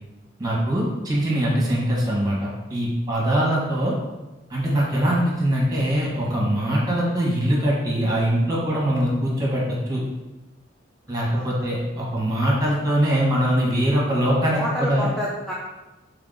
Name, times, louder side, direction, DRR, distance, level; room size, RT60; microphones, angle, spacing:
voice 1, 0.4-3.9 4.5-10.0 11.1-15.1, right 1 dB, 20° right, -4 dB, 1.1 m, -22 dB
voice 2, 11.1-11.7 14.5-15.5, left 1 dB, 5° left, -6 dB, 0.4 m, -30 dB
3.4 x 2.8 x 3.7 m, 1.1 s
head